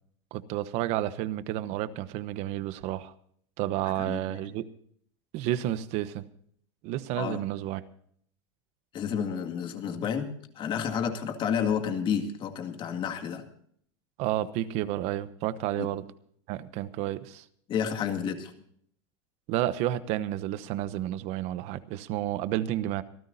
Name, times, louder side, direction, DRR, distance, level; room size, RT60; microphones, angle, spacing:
voice 1, 0.3-3.1 3.6-4.6 5.3-6.2 6.8-7.8 14.2-16.0 16.5-17.4 19.5-23.0, right 13 dB, 50° right, 14 dB, 1.0 m, -31 dB
voice 2, 4.0-4.5 7.2-7.4 8.9-10.3 10.6-13.5 15.8-15.9 17.7-18.5, left 7 dB, 35° left, 6 dB, 2.1 m, -30 dB
26.0 x 14.0 x 2.7 m, 0.63 s
supercardioid pair, 135°, 14 cm